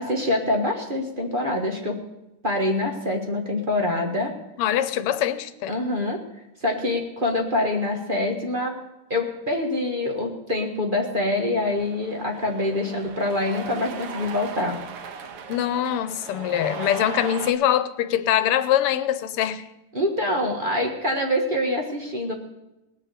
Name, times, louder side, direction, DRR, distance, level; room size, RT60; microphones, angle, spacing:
voice 1, 0.0-2.0 2.4-4.3 5.7-6.2 6.6-8.8 9.1-14.8 19.9-22.3, left 1 dB, 25° right, 1.4 m, -25 dB
voice 2, 4.6-5.8 15.5-19.7, left 11 dB, 90° left, 1.7 m, -23 dB
Cheering, 11.5-17.5, right 6 dB, 85° right, 2.0 m, -37 dB
18.5 x 6.7 x 8.2 m
omnidirectional pair, 2.4 m